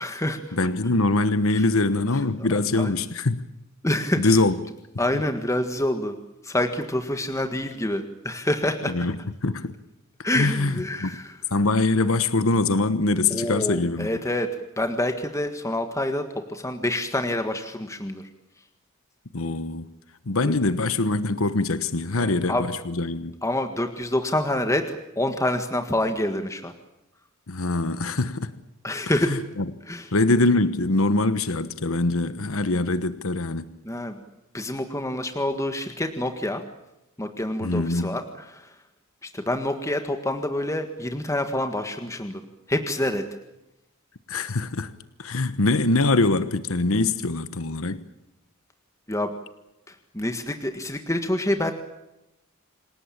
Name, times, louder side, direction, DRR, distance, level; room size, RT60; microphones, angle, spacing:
voice 1, 0.0-0.6 1.5-1.6 2.4-2.5 2.7-2.9 3.8-4.4 5.0-6.2 6.4-8.9 10.2-11.4 13.3-14.5 14.8-18.2 20.4-20.5 22.2-22.6 23.4-26.7 28.8-29.3 29.9-30.1 33.9-34.2 34.5-36.6 37.2-38.8 39.2-42.4 42.7-43.2 49.1-49.3 49.9-51.7, left 1 dB, 15° left, 1.7 m, -27 dB
voice 2, 0.5-3.4 4.2-4.5 8.9-9.1 9.4-9.7 10.3-11.2 11.5-14.2 19.3-19.9 20.3-23.3 27.5-28.5 29.2-29.6 30.1-33.7 37.6-38.2 44.3-44.9 45.2-48.0, left 2 dB, 75° left, 1.2 m, -23 dB
27.5 x 18.0 x 8.7 m
head